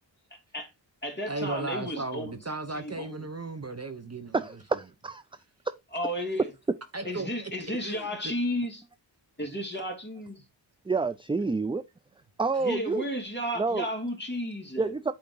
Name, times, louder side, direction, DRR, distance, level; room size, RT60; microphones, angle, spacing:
voice 1, 0.3-0.7 1.0-2.3 2.7-3.2 5.9-6.5 7.0-8.8 9.4-10.4 12.6-14.9, equal, 20° left, 2.7 m, -33 dB
voice 2, 1.3-4.3 6.9-7.5 7.8-8.3, right 2 dB, 35° right, 0.9 m, -35 dB
voice 3, 4.3-5.2 10.9-11.8 12.4-13.0 13.6-13.9 14.8-15.1, right 4 dB, 15° right, 0.3 m, -28 dB
8.7 x 3.6 x 3.8 m
wide cardioid pair, 50°, 46 cm